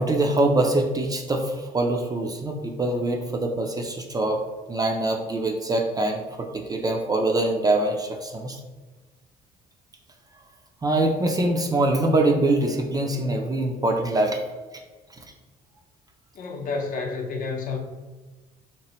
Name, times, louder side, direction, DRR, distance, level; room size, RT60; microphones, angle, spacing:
voice 1, 0.0-4.4 4.7-8.6 10.8-14.4, right 2 dB, 20° right, 2 dB, 0.4 m, -24 dB
voice 2, 16.3-17.8, left 4 dB, 55° left, 2 dB, 0.7 m, -30 dB
3.2 x 3.0 x 2.9 m, 1.2 s
cardioid pair, 110°, 17 cm